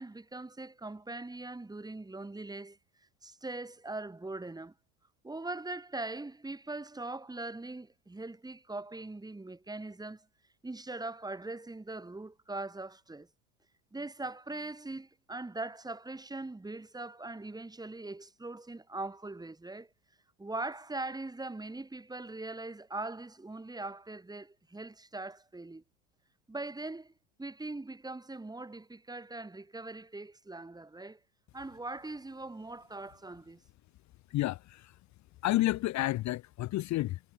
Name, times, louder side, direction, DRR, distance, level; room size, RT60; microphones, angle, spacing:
voice 1, 0.0-2.8 3.2-4.7 5.2-10.3 10.6-13.3 13.9-19.9 20.4-25.8 26.5-27.1 27.4-31.2 31.5-33.6, right 2 dB, 10° right, 5.5 m, -41 dB
voice 2, 34.3-34.9 35.4-37.2, left 16 dB, 45° left, 1.4 m, -30 dB
hypercardioid pair, 90°, 39 cm